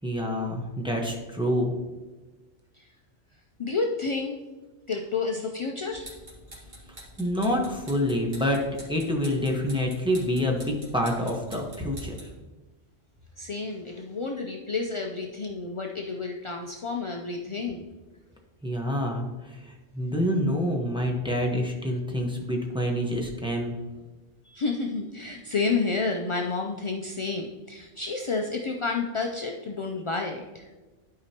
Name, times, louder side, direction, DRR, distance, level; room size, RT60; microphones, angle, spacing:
voice 1, 0.0-1.7 7.2-8.6 8.9-12.1 18.6-23.7, equal, 5° right, -1 dB, 1.0 m, -27 dB
voice 2, 3.6-4.4 4.9-6.1 13.4-17.8 24.4-30.7, left 4 dB, 55° left, 1 dB, 0.3 m, -30 dB
sound 1, 5.9-12.4, right 1 dB, 50° right, 2.0 m, -47 dB
11.5 x 4.8 x 2.9 m, 1.2 s
omnidirectional pair, 1.3 m